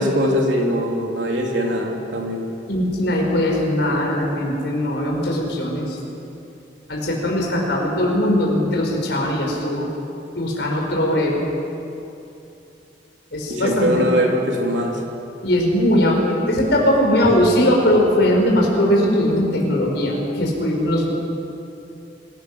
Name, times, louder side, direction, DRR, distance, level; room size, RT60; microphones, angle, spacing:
voice 1, 0.0-2.4 13.5-15.0, equal, 85° right, 0 dB, 3.4 m, -21 dB
voice 2, 2.7-6.0 6.9-9.9 10.3-11.4 13.3-14.1 15.4-21.1, left 1 dB, 65° left, -1 dB, 5.5 m, -20 dB
26.5 x 17.0 x 6.4 m, 2.7 s
head